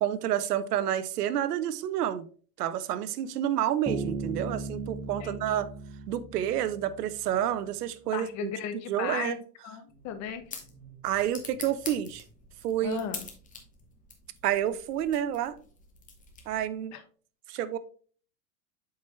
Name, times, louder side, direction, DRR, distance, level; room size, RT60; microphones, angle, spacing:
voice 1, 0.0-2.3 2.6-5.7 6.1-8.5 8.9-9.4 11.0-12.2 12.6-13.0 14.4-15.6 16.5-16.9 17.5-17.8, right 11 dB, 80° right, 0.9 m, -29 dB
Bass guitar, 3.9-7.4, right 4 dB, 10° right, 0.8 m, -37 dB
voice 2, 5.2-5.6 8.1-9.4 9.6-10.4 12.8-13.2 16.9-17.0, left 8 dB, 35° left, 1.2 m, -36 dB
sound 1, 9.9-16.8, left 4 dB, 15° left, 1.5 m, -46 dB
8.2 x 4.7 x 3.1 m
supercardioid pair, 125°, 46 cm